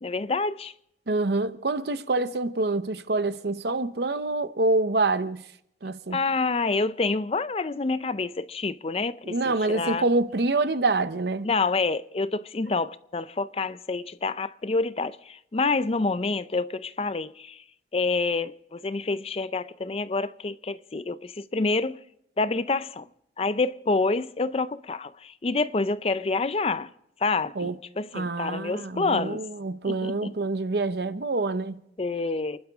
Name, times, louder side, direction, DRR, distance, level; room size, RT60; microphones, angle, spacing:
voice 1, 0.0-0.7 6.1-10.0 11.4-17.6 17.9-22.0 22.4-23.1 23.4-26.9 27.2-29.4 29.8-30.3 32.0-32.6, left 3 dB, 30° left, 0.5 m, -27 dB
voice 2, 1.1-5.4 5.8-6.2 9.3-11.5 27.6-27.8 28.1-31.8, right 3 dB, 65° right, 0.8 m, -26 dB
29.5 x 11.5 x 3.5 m
head